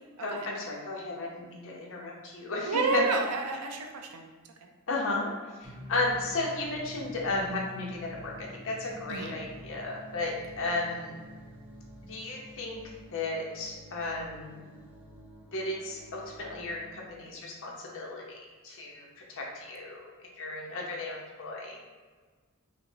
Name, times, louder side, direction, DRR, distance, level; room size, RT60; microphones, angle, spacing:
voice 1, 0.2-3.0 4.9-5.3 5.6-11.1 12.1-12.8 13.1-14.6 15.5-20.1 20.4-21.8, left 2 dB, 60° left, -2 dB, 0.7 m, -34 dB
voice 2, 2.7-4.3 9.1-9.4, right 4 dB, 80° right, 4 dB, 0.5 m, -30 dB
sound 1, 5.6-12.5, left 1 dB, 25° left, 1.2 m, -48 dB
sound 2, 6.0-17.1, right 1 dB, 10° right, 0.5 m, -51 dB
5.1 x 2.1 x 2.7 m, 1.4 s
head